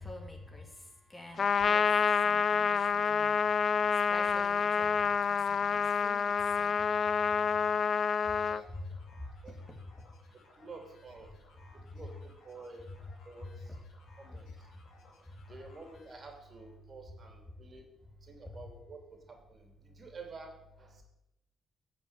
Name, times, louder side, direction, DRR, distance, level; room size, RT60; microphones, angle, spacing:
voice 1, 0.0-6.9 7.5-7.7 8.7-9.3 9.7-9.8 11.9-12.0, left 2 dB, 20° left, 3 dB, 2.2 m, -48 dB
Trumpet, 1.4-8.6, left 6 dB, 45° left, 0.3 m, -28 dB
sound 1, 7.1-16.8, left 2 dB, 65° left, 2.5 m, -63 dB
voice 2, 10.6-11.3 11.7-12.9 13.2-13.8 14.2-14.7 15.5-17.8 18.2-21.0, right 3 dB, 40° right, 3 dB, 2.8 m, -50 dB
9.6 x 5.2 x 7.8 m, 0.87 s
hypercardioid pair, 45°, 0 cm